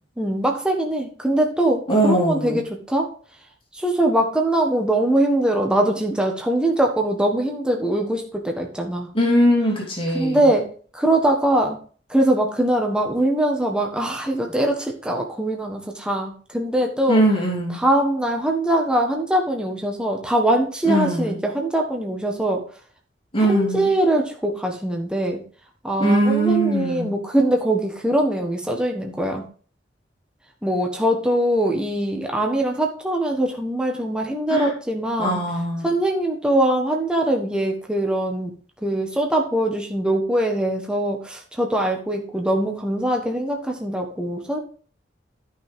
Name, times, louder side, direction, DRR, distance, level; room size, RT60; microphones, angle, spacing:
voice 1, 0.2-3.1 3.8-9.1 10.1-10.7 10.9-11.8 12.1-17.2 17.8-22.6 23.4-25.4 25.8-29.4 30.6-35.4 35.8-38.5 38.8-44.6, right 1 dB, 5° right, 1 dB, 1.4 m, -22 dB
voice 2, 1.9-2.6 9.1-10.5 17.1-17.8 20.8-21.4 23.3-23.9 26.0-27.1 34.5-34.7 35.2-35.9, right 1 dB, 30° left, -1 dB, 2.9 m, -20 dB
13.0 x 5.9 x 3.7 m, 0.42 s
head